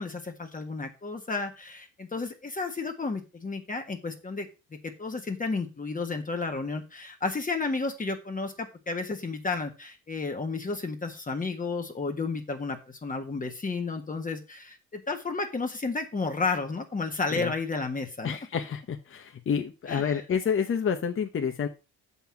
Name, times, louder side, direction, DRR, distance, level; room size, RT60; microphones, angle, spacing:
voice 1, 0.0-4.5 5.0-18.4 19.9-20.1, left 4 dB, 25° left, 4 dB, 1.5 m, -32 dB
voice 2, 18.2-21.7, left 7 dB, 45° left, 4 dB, 1.1 m, -29 dB
7.0 x 5.8 x 5.8 m, 0.30 s
cardioid pair, 90°, 30 cm